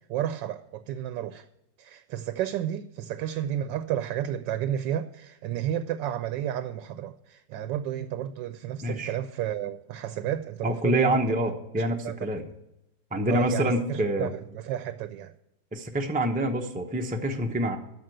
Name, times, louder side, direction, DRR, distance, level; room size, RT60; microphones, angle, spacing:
voice 1, 0.1-1.5 1.8-11.1 11.8-12.1 13.3-15.3, right 11 dB, 80° right, 1.3 m, -32 dB
voice 2, 8.8-9.2 10.6-12.5 13.1-14.3 15.7-17.8, right 1 dB, 15° right, 0.3 m, -26 dB
13.0 x 5.0 x 7.8 m
omnidirectional pair, 2.0 m